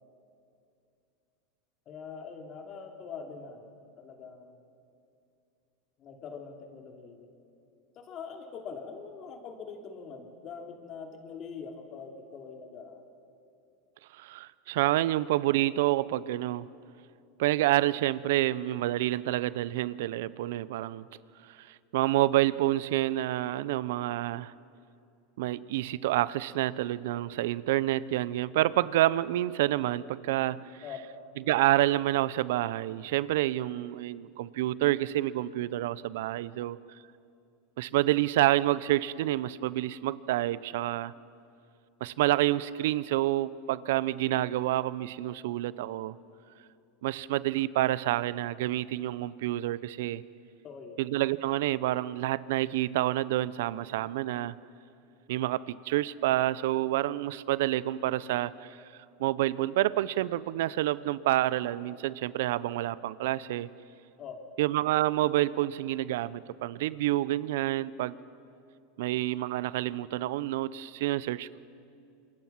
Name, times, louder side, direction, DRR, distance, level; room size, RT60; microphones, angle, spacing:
voice 1, 1.9-3.7 4.0-4.6 6.0-7.3 7.9-13.1 30.8-31.1 50.6-51.0 64.2-64.5, left 5 dB, 40° left, 3 dB, 3.1 m, -43 dB
voice 2, 14.1-16.7 17.4-21.1 21.5-24.5 25.4-30.8 31.5-36.8 37.8-41.1 42.0-46.2 47.0-50.2 51.0-54.5 55.3-58.8 59.2-63.7 64.6-68.2 69.0-71.6, right 15 dB, 70° right, 19 dB, 0.6 m, -28 dB
27.0 x 22.0 x 6.0 m, 2.6 s
hypercardioid pair, 105°, 0 cm